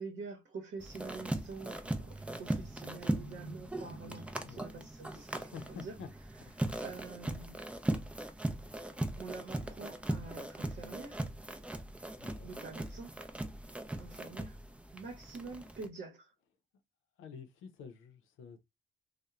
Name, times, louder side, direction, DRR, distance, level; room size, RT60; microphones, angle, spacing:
voice 1, 0.0-5.9 6.6-7.6 9.2-11.2 12.4-13.1 14.0-14.6 14.9-16.3, right 4 dB, 55° right, 0.8 m, -46 dB
sound 1, 0.8-15.9, right 1 dB, 5° right, 0.4 m, -39 dB
voice 2, 5.5-6.1 6.6-6.7 12.2-12.5 17.2-18.6, left 6 dB, 80° left, 0.6 m, -49 dB
2.8 x 2.1 x 2.3 m
cardioid pair, 90°, 20 cm